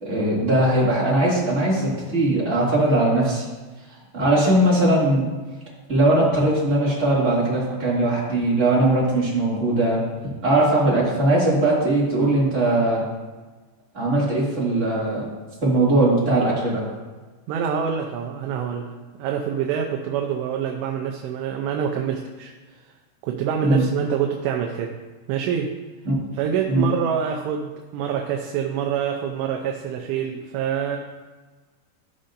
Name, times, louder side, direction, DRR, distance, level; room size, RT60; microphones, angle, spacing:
voice 1, 0.0-3.4 4.1-5.2 5.9-10.0 10.4-13.0 13.9-15.2 15.6-16.9 23.6-23.8 26.0-26.1 26.7-26.8, right 1 dB, 25° right, -8 dB, 1.7 m, -20 dB
voice 2, 17.5-22.5 23.2-25.0 25.3-25.8 26.4-31.0, right 7 dB, 85° right, 2 dB, 2.8 m, -26 dB
14.5 x 5.4 x 2.6 m, 1.3 s
omnidirectional pair, 5.0 m